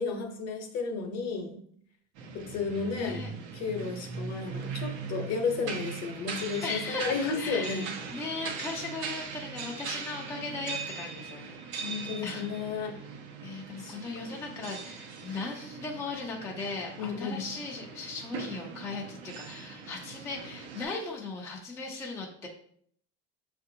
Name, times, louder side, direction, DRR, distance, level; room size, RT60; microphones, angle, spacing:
voice 1, 0.0-1.7 2.3-3.2 3.5-8.0 11.8-13.0 13.8-14.3 17.0-17.4, left 4 dB, 50° left, 4 dB, 0.8 m, -33 dB
sound 1, 2.1-20.8, right 5 dB, 90° right, 0.8 m, -40 dB
voice 2, 2.9-3.3 6.6-11.9 12.2-12.5 13.4-22.5, left 3 dB, 10° left, -2 dB, 0.3 m, -38 dB
5.9 x 2.5 x 2.7 m, 0.63 s
cardioid pair, 155°, 34 cm